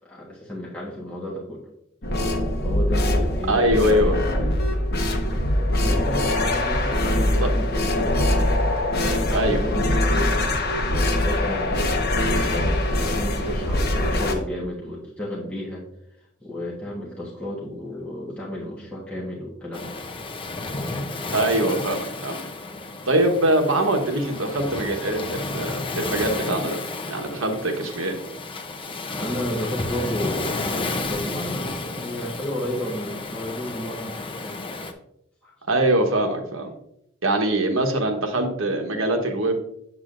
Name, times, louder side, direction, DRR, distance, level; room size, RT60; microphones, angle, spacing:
voice 1, 0.0-1.6 2.6-4.5 5.3-8.3 9.0-15.8 16.4-20.0 29.2-34.6 35.4-35.5, left 1 dB, 5° left, -6 dB, 1.3 m, -32 dB
sound 1, 2.0-14.3, left 1 dB, 50° left, 1.0 m, -22 dB
voice 2, 3.5-4.2 7.4-7.5 9.3-9.6 21.3-22.4 23.1-26.8 27.1-28.2 35.7-36.7 37.2-39.7, right 1 dB, 70° right, 4 dB, 1.1 m, -23 dB
Waves surf, 19.7-34.9, left 2 dB, 25° left, 0.6 m, -32 dB
7.7 x 7.2 x 2.5 m, 0.77 s
head